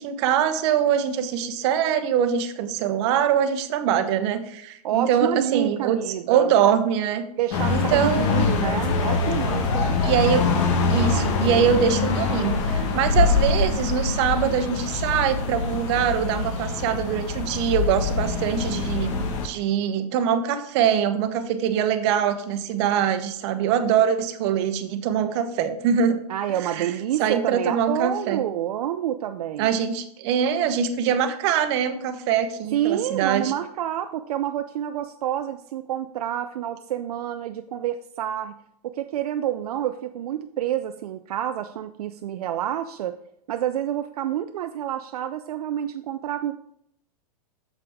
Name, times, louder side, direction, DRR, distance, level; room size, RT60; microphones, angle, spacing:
voice 1, 0.0-6.0 6.3-7.2 7.7-8.5 10.0-10.5 10.9-26.2 26.6-26.9 27.2-28.4 29.6-33.5, right 8 dB, 45° right, 8 dB, 1.0 m, -23 dB
voice 2, 4.8-6.5 7.4-9.9 26.3-29.7 32.7-38.6 38.8-43.2 43.5-46.5, right 11 dB, 70° right, 8 dB, 0.5 m, -28 dB
sound 1, 7.5-19.5, left 4 dB, 50° left, 1.4 m, -24 dB
6.9 x 6.8 x 3.6 m, 0.72 s
hypercardioid pair, 140°, 20 cm